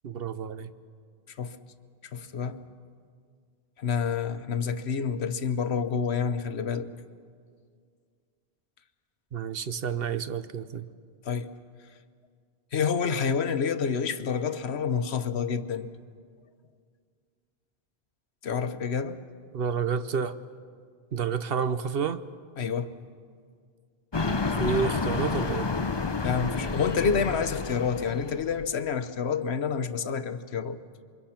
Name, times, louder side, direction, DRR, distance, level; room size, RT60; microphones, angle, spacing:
voice 1, 0.0-0.7 9.3-10.9 19.5-20.3 21.1-22.2 24.6-25.7, right 6 dB, 65° right, 1.0 m, -29 dB
voice 2, 2.1-2.7 3.8-6.9 11.2-11.5 12.7-15.9 18.4-19.2 22.6-22.9 26.2-30.8, left 6 dB, 85° left, 1.2 m, -28 dB
sound 1, 24.1-28.7, left 4 dB, 30° left, 0.7 m, -30 dB
28.0 x 24.5 x 5.9 m
omnidirectional pair, 1.1 m